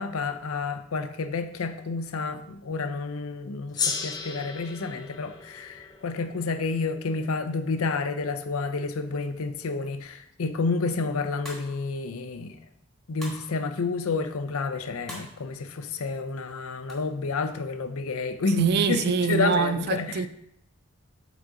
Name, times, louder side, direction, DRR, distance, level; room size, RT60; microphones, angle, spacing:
voice 1, 0.0-12.6 13.1-19.0 19.3-20.3, left 3 dB, 80° left, 0.6 m, -29 dB
Gong, 3.7-8.5, left 5 dB, 20° left, 0.4 m, -35 dB
sound 1, 11.4-11.9 13.2-13.6 15.1-15.4 16.9-17.0, equal, ahead, 1.2 m, -41 dB
voice 2, 18.5-20.3, right 5 dB, 45° right, 0.3 m, -25 dB
8.3 x 3.9 x 3.8 m
head